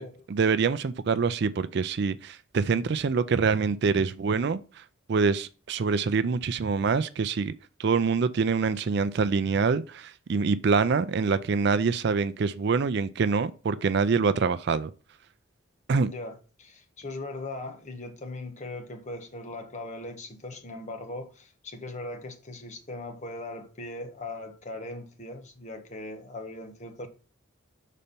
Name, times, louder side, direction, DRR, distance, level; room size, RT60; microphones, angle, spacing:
voice 1, 0.3-4.8 5.1-7.5 7.8-14.9 15.9-16.1, right 5 dB, 50° right, 0.4 m, -25 dB
voice 2, 16.0-27.1, left 2 dB, 35° left, 1.0 m, -39 dB
5.6 x 4.2 x 5.1 m
head